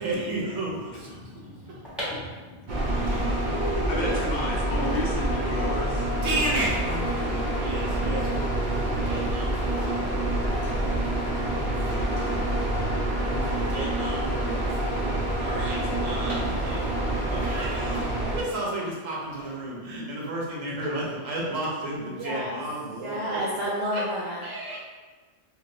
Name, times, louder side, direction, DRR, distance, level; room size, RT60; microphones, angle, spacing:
voice 1, 0.0-1.2 1.7-1.8 2.8-4.1 6.2-11.0 11.9-14.7 15.2-23.4 23.9-24.0 24.4-24.8, right 1 dB, 85° right, -4 dB, 1.2 m, -33 dB
voice 2, 0.9-6.2, left 1 dB, 60° left, -2 dB, 0.7 m, -35 dB
sound 1, 1.8-13.7 14.0-14.1 14.3-17.1 17.5-18.6 19.1-20.1 20.5-20.8, equal, ahead, 0.9 m, -44 dB
sound 2, 2.7-18.4, right 1 dB, 50° right, 0.6 m, -27 dB
voice 3, 22.0-22.6 22.9-24.4, equal, 70° right, -6 dB, 0.9 m, -30 dB
3.1 x 2.6 x 2.6 m, 1.3 s
omnidirectional pair, 1.3 m